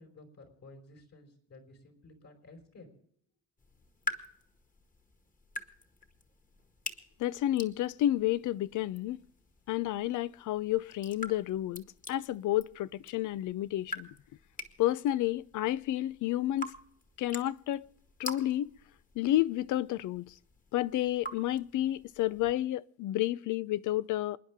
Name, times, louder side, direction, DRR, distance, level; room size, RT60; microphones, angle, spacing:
voice 1, 0.0-3.0, left 2 dB, 60° left, 5.0 m, -54 dB
sound 1, 3.6-22.5, left 1 dB, 25° left, 1.8 m, -46 dB
voice 2, 7.2-9.2 9.7-11.8 12.1-14.1 14.8-16.7 17.2-17.8 18.2-18.7 19.2-20.3 20.7-24.4, left 14 dB, 80° left, 0.6 m, -30 dB
28.0 x 10.0 x 3.6 m
cardioid pair, 90°, 30 cm